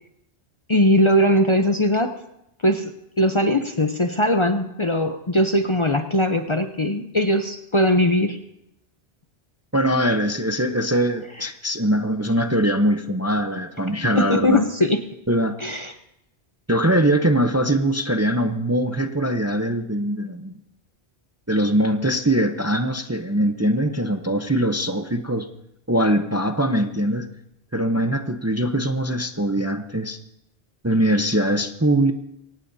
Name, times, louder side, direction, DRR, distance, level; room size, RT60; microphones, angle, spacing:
voice 1, 0.7-2.2 2.6-2.9 3.2-8.4 14.1-15.0 15.6-15.9, left 1 dB, 30° left, 6 dB, 0.7 m, -20 dB
voice 2, 9.7-14.6 15.3-15.5 16.7-20.5 21.5-25.5 25.9-27.3 27.7-30.2 30.8-32.1, right 1 dB, 15° right, 7 dB, 0.7 m, -22 dB
23.0 x 18.0 x 2.7 m, 0.83 s
omnidirectional pair, 1.1 m